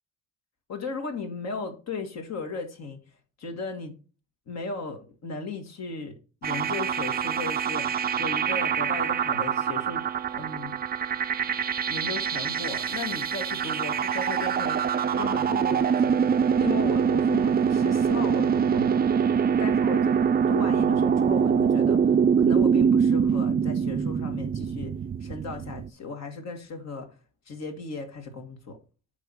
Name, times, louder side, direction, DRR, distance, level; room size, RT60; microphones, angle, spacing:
voice 1, 0.7-3.0 3.4-3.9 4.5-10.0 10.3-10.8 11.9-14.8 15.1-16.1 16.6-19.0 19.6-20.2 20.5-24.9 25.2-27.1 27.5-28.8, left 4 dB, 60° left, 1.8 m, -36 dB
sound 1, 6.4-25.9, right 7 dB, 30° right, 0.4 m, -24 dB
8.3 x 3.4 x 5.6 m
cardioid pair, 90°, 30 cm